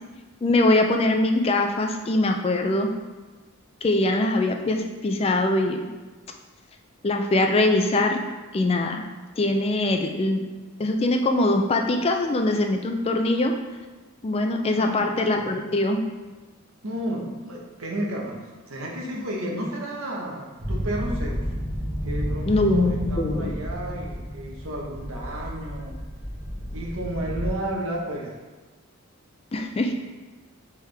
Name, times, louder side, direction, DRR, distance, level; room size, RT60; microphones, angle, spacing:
voice 1, 0.4-2.9 3.8-5.9 7.0-8.2 8.5-9.0 9.4-10.5 10.8-13.5 14.2-16.0 22.5-23.6 29.5-29.9, left 2 dB, 25° left, 4 dB, 0.3 m, -22 dB
voice 2, 14.7-15.1 16.8-21.5 22.0-26.0 26.7-28.4 29.9-30.0, right 1 dB, 75° right, -2 dB, 0.9 m, -32 dB
sound 1, 20.6-27.5, equal, 30° right, 1.0 m, -31 dB
4.6 x 3.5 x 3.3 m, 1.3 s
head